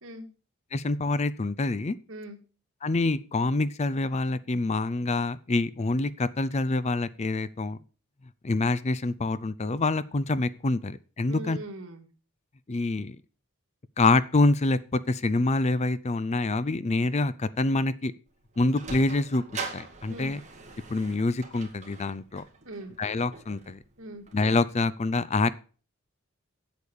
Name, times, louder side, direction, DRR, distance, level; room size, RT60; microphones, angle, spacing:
voice 1, 0.7-2.0 2.8-7.8 8.4-11.6 12.7-13.2 14.0-18.1 18.6-19.4 19.7-20.4 20.9-22.4 23.0-23.8 24.3-25.5, left 2 dB, 30° left, 16 dB, 0.5 m, -26 dB
voice 2, 2.1-2.4 11.3-12.1 20.1-20.3 22.6-22.9 24.0-24.2, right 1 dB, 70° right, 4 dB, 2.2 m, -40 dB
Sliding door, 18.3-24.8, right 4 dB, 35° right, 2.3 m, -43 dB
8.4 x 8.3 x 7.0 m, 0.38 s
head